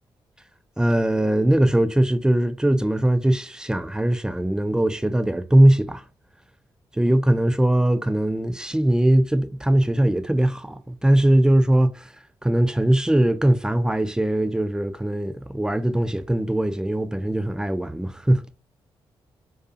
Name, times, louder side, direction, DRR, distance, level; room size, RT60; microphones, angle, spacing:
voice 1, 0.8-6.0 7.0-12.1 12.4-18.4, right 1 dB, 5° right, 0.3 m, -20 dB
2.5 x 2.3 x 2.5 m
supercardioid pair, 45°, 10 cm